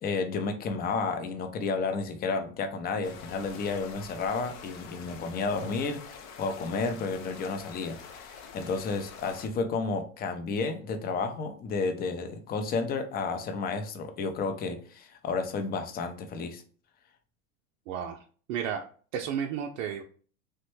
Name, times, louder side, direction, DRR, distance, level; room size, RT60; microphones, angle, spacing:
voice 1, 0.0-16.6, left 4 dB, 25° left, 7 dB, 0.4 m, -32 dB
sound 1, 3.0-9.5, left 6 dB, 80° left, 0.7 m, -46 dB
voice 2, 17.9-18.2 18.5-18.8 19.1-20.0, right 8 dB, 70° right, 3 dB, 0.5 m, -32 dB
3.1 x 2.1 x 3.0 m, 0.42 s
hypercardioid pair, 105°, 40 cm